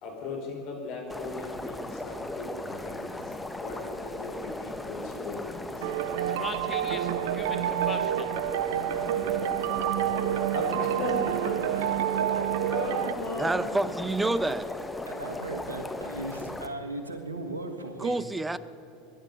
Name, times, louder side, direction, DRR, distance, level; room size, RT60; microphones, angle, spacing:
voice 1, 0.0-5.9 10.5-11.5 12.1-12.4 12.7-14.0, left 3 dB, 55° left, 0 dB, 4.8 m, -38 dB
sound 1, 1.1-16.7, left 2 dB, 10° left, 1.3 m, -37 dB
sound 2, 5.8-13.1, right 11 dB, 65° right, 0.6 m, -28 dB
voice 2, 6.2-8.3 12.5-12.7, left 5 dB, 25° left, 9 dB, 0.9 m, -40 dB
voice 3, 11.3-12.4 12.9-13.2 15.0-18.2, right 2 dB, 90° right, 6 dB, 1.6 m, -38 dB
voice 4, 13.4-14.7 18.0-18.6, right 2 dB, 10° right, 15 dB, 0.7 m, -28 dB
22.5 x 11.0 x 5.6 m, 2.9 s
hypercardioid pair, 80°, 0 cm